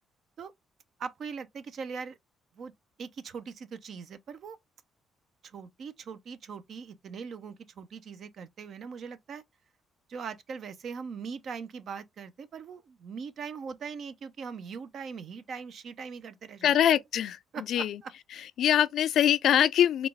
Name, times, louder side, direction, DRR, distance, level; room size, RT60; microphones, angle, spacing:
voice 1, 1.0-2.2 2.6-2.7 3.0-4.6 5.4-9.4 10.1-16.7 17.5-18.1, right 6 dB, 60° right, 0.5 m, -41 dB
voice 2, 16.6-18.0 18.6-20.1, left 10 dB, 70° left, 0.3 m, -24 dB
3.9 x 2.3 x 3.3 m
cardioid pair, 90°, 0 cm